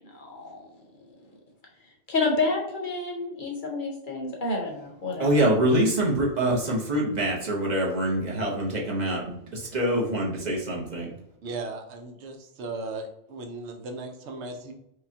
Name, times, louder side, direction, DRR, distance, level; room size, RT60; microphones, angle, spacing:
voice 1, 0.0-0.6 2.1-5.4, left 3 dB, 50° left, -1 dB, 0.9 m, -29 dB
voice 2, 5.2-11.1, right 1 dB, 45° right, -2 dB, 0.9 m, -25 dB
voice 3, 11.4-14.7, right 3 dB, 80° right, 4 dB, 0.9 m, -37 dB
4.9 x 2.2 x 2.8 m, 0.80 s
omnidirectional pair, 1.1 m